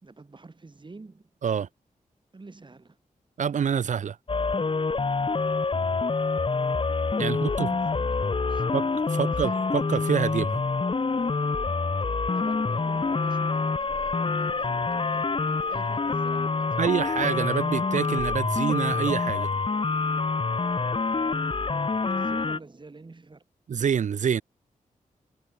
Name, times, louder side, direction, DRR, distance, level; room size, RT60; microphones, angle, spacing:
voice 1, 0.0-1.3 2.3-3.0 7.1-8.8 9.1-9.5 12.1-16.8 22.1-23.4, right 3 dB, 35° right, 4.1 m, -48 dB
voice 2, 3.4-4.2 7.2-7.7 8.7-8.9 9.2-10.6 16.8-19.5 23.7-24.4, right 7 dB, 60° right, 0.5 m, -26 dB
sound 1, 4.3-22.6, left 4 dB, 35° left, 1.4 m, -26 dB
cardioid pair, 80°, 14 cm